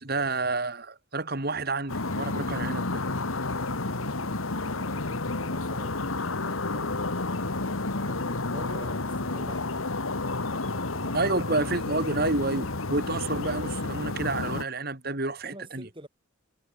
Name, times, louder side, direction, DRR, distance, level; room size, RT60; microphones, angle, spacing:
voice 1, 0.0-3.0 11.1-15.9, right 3 dB, 45° right, 2.5 m, -29 dB
sound 1, 1.9-14.6, left 2 dB, 80° left, 1.9 m, -31 dB
voice 2, 4.7-7.2 7.9-11.3 15.2-16.1, right 1 dB, 25° right, 6.7 m, -49 dB
head